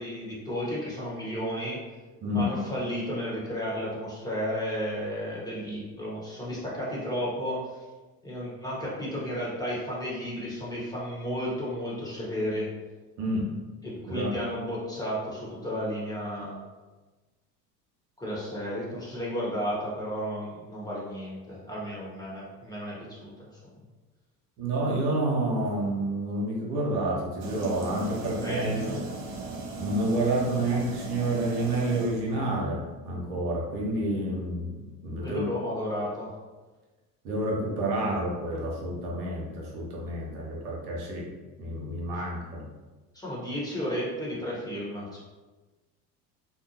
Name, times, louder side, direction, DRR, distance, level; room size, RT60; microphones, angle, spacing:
voice 1, 0.0-1.8 2.3-7.8 8.2-12.7 13.8-16.5 18.2-23.7 28.4-28.9 35.2-36.3 43.1-45.2, equal, 10° left, -7 dB, 1.1 m, -33 dB
voice 2, 13.2-13.5 14.1-14.4 24.6-29.0 29.8-35.4 37.2-41.3 41.6-42.7, right 1 dB, 75° right, -3 dB, 0.9 m, -29 dB
sound 1, 27.4-32.7, right 3 dB, 50° right, 0.6 m, -37 dB
2.6 x 2.2 x 2.8 m, 1.2 s
hypercardioid pair, 65°, 49 cm